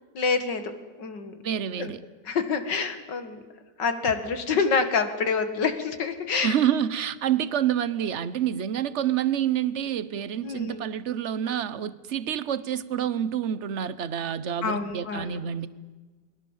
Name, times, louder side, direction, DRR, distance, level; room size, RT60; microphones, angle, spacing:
voice 1, 0.1-0.7 1.0-1.4 1.8-1.9 2.3-3.4 3.8-6.5 10.4-10.9 14.6-15.4, left 5 dB, 85° left, 2.5 m, -27 dB
voice 2, 1.4-2.0 6.4-15.7, right 9 dB, 50° right, 1.1 m, -27 dB
28.5 x 21.5 x 7.4 m
omnidirectional pair, 1.8 m